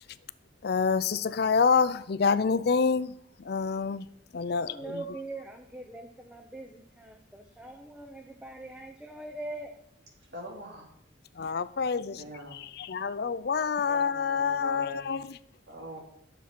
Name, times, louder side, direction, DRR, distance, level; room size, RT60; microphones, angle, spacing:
voice 1, 0.6-3.1 3.4-4.1 4.3-5.0 11.4-12.2 12.5-15.4, left 5 dB, 55° left, 0.4 m, -27 dB
voice 2, 4.6-9.8, right 2 dB, 5° right, 0.7 m, -42 dB
voice 3, 10.3-10.9 11.8-12.6 13.9-15.2 15.7-16.0, equal, 60° right, 3.0 m, -44 dB
9.9 x 7.0 x 6.0 m
head